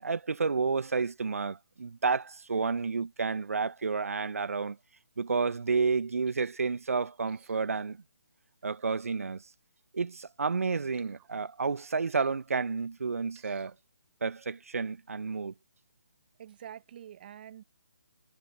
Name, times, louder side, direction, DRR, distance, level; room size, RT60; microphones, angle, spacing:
voice 1, 0.0-4.8 5.2-8.0 8.6-9.4 9.9-13.7 14.2-15.5, right 4 dB, 65° right, 1.5 m, -30 dB
sound 1, 6.2-6.6 7.3-7.7 8.6-9.0 10.9-11.3 12.1-12.4 13.3-13.8 14.4-14.5, right 16 dB, 15° right, 6.5 m, -62 dB
voice 2, 16.4-17.6, right 10 dB, 40° right, 2.0 m, -46 dB
figure-of-eight pair, 145°, 8 cm